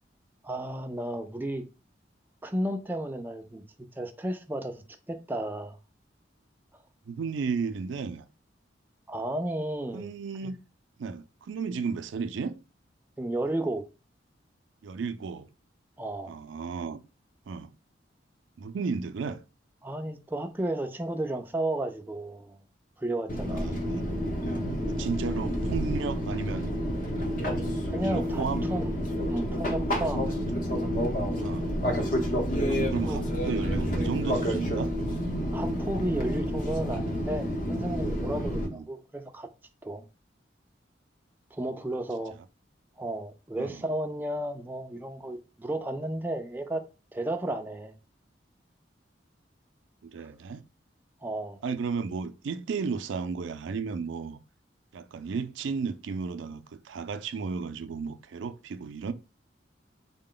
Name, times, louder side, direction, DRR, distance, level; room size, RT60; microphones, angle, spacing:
voice 1, 0.4-1.6 2.4-3.6 4.0-5.8 9.1-10.1 10.4-10.5 13.2-13.8 16.0-16.4 19.8-22.6 23.0-23.8 27.9-29.0 29.3-30.3 31.3-31.6 32.7-33.2 35.5-39.5 39.8-40.0 41.5-42.3 43.0-46.8 47.1-47.9 51.2-51.6, right 1 dB, 10° right, 0.3 m, -33 dB
voice 2, 7.1-8.2 9.9-10.6 11.0-12.6 14.8-15.5 16.3-17.0 17.5-17.7 18.6-19.4 23.5-24.0 24.9-26.7 28.0-28.6 31.4-31.7 32.7-34.9 38.5-38.9 43.6-43.9 50.0-50.6 51.6-54.4 54.9-59.1, right 5 dB, 90° right, 0.4 m, -33 dB
Fixed-wing aircraft airplane, 23.3-38.7, equal, 45° left, 0.8 m, -29 dB
3.7 x 2.1 x 3.8 m
head